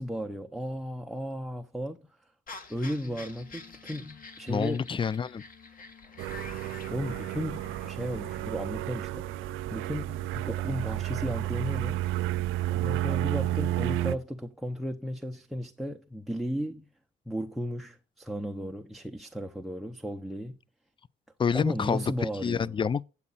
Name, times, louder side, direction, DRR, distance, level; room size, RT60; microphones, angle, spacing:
voice 1, 0.0-2.0 2.7-5.0 6.9-12.0 12.7-16.9 17.3-20.6 21.5-22.8, equal, ahead, 0.7 m, -35 dB
sound 1, 2.5-8.4, left 3 dB, 45° left, 1.9 m, -48 dB
sound 2, 3.1-14.3, left 8 dB, 80° left, 2.6 m, -58 dB
voice 2, 4.5-5.4 21.4-23.1, left 6 dB, 25° left, 0.4 m, -28 dB
sound 3, 6.2-14.2, right 14 dB, 90° right, 0.5 m, -31 dB
8.5 x 8.3 x 4.1 m
cardioid pair, 90°, 20 cm